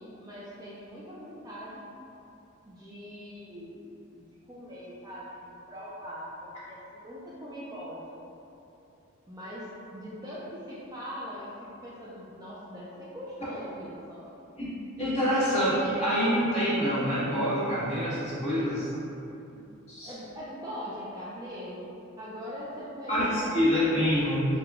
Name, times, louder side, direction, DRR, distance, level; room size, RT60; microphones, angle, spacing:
voice 1, 0.0-1.9 2.7-3.9 4.5-8.2 9.3-14.3 20.0-23.5, equal, 15° right, -8 dB, 0.4 m, -41 dB
voice 2, 15.0-18.9 19.5-19.6 19.9-20.1 23.1-24.5, equal, 30° left, -12 dB, 1.4 m, -26 dB
4.7 x 2.3 x 3.5 m, 2.8 s
head